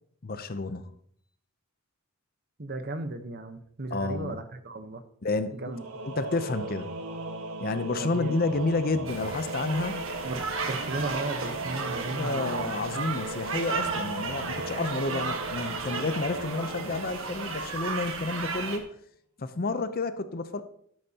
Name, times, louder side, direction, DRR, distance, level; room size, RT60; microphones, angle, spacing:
voice 1, 0.2-0.9 3.9-4.4 5.2-5.5 6.0-6.9 7.6-10.1 12.0-18.9 19.4-20.6, left 3 dB, 40° left, 0.6 m, -30 dB
voice 2, 2.6-5.0 5.5-5.8 8.0-8.4 10.2-13.1, right 2 dB, 45° right, 1.0 m, -36 dB
Singing / Musical instrument, 5.7-18.2, right 2 dB, 85° right, 1.3 m, -37 dB
sound 1, 9.1-18.8, right 4 dB, 60° right, 1.5 m, -34 dB
12.5 x 12.0 x 2.9 m
head